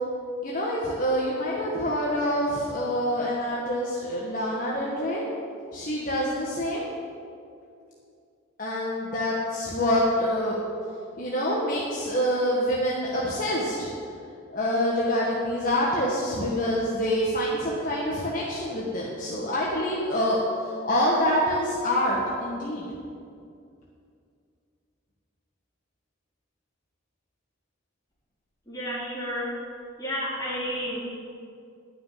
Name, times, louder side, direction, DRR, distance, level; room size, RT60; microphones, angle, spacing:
voice 1, 0.4-5.2 5.7-6.9 8.6-10.6 11.2-13.9 14.5-20.4 20.6-22.9, equal, 45° left, -5 dB, 1.5 m, -26 dB
voice 2, 28.7-29.6 30.0-31.0, equal, 20° left, -8 dB, 3.7 m, -31 dB
11.5 x 6.6 x 9.3 m, 2.4 s
head